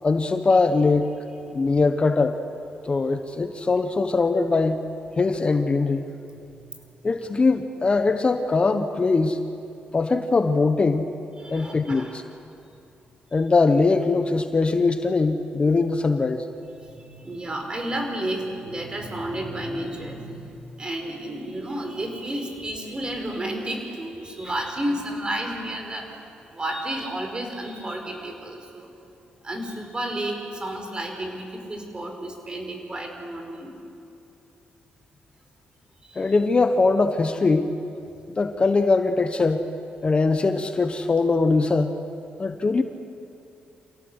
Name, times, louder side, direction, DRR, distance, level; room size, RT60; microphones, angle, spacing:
voice 1, 0.0-1.1 1.5-2.4 2.8-4.8 5.2-6.1 7.0-9.4 9.9-11.1 11.5-12.2 13.3-16.4 36.1-37.7 38.4-39.6 40.0-42.0 42.4-42.8, left 3 dB, 35° left, 8 dB, 1.2 m, -21 dB
voice 2, 11.4-12.2 16.8-26.2 26.5-28.9 29.4-33.7 36.0-36.4, right 1 dB, 25° right, 3 dB, 5.2 m, -32 dB
28.0 x 17.0 x 8.2 m, 2.7 s
cardioid pair, 80°, 3 cm